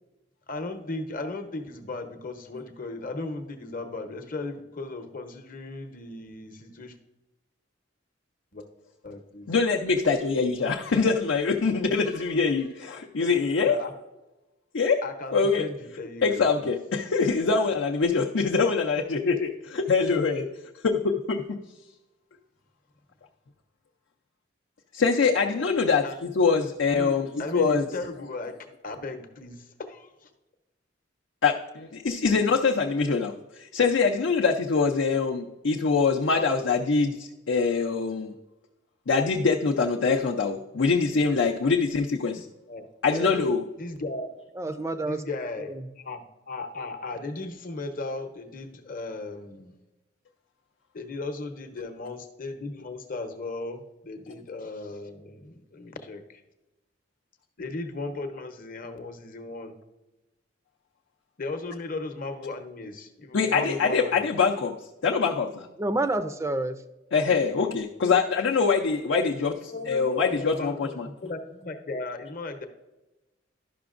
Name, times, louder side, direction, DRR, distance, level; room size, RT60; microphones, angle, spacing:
voice 1, 0.5-6.9 8.5-8.7 9.0-9.5 13.2-13.3 13.6-13.9 15.0-16.7 26.0-26.2 26.9-28.6 28.8-30.3 42.7-42.9 43.8-44.3 45.0-49.7 50.9-56.4 57.6-59.7 61.4-64.3 69.7-72.7, left 2 dB, 45° left, 6 dB, 0.8 m, -36 dB
voice 2, 9.5-13.8 14.7-15.0 15.3-15.6 16.2-20.5 20.8-21.6 24.9-27.8 31.4-38.3 39.1-42.5 43.0-43.7 63.3-64.7 65.0-65.7 67.1-71.1, left 4 dB, 75° left, 0 dB, 0.5 m, -24 dB
voice 3, 43.1-43.5 44.6-45.2 45.7-45.9 65.8-66.8, right 2 dB, 15° right, 10 dB, 0.4 m, -29 dB
11.5 x 5.9 x 2.5 m, 1.0 s
head